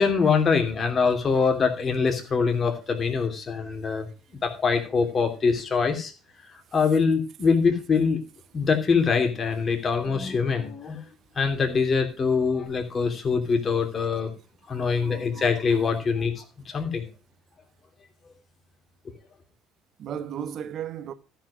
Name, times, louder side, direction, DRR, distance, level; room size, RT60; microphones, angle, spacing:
voice 1, 0.0-4.1 4.4-6.1 6.7-8.2 8.5-11.0 11.4-14.3 14.7-17.0, left 5 dB, 40° left, 2.8 m, -24 dB
voice 2, 14.7-15.8 20.0-21.1, right 9 dB, 55° right, 1.2 m, -36 dB
13.5 x 5.7 x 6.3 m
hypercardioid pair, 65°, 0 cm